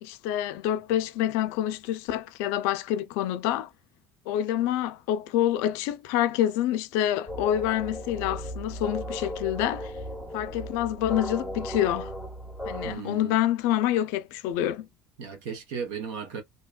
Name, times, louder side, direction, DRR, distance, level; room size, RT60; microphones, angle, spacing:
voice 1, 0.0-3.7 4.3-9.9 10.3-12.1 12.7-14.9, left 12 dB, 85° left, 0.4 m, -27 dB
sound 1, 7.3-12.9, equal, ahead, 0.6 m, -36 dB
voice 2, 12.8-13.4 15.2-16.4, right 6 dB, 90° right, 1.1 m, -36 dB
2.8 x 2.2 x 2.3 m
cardioid pair, 160°, 5 cm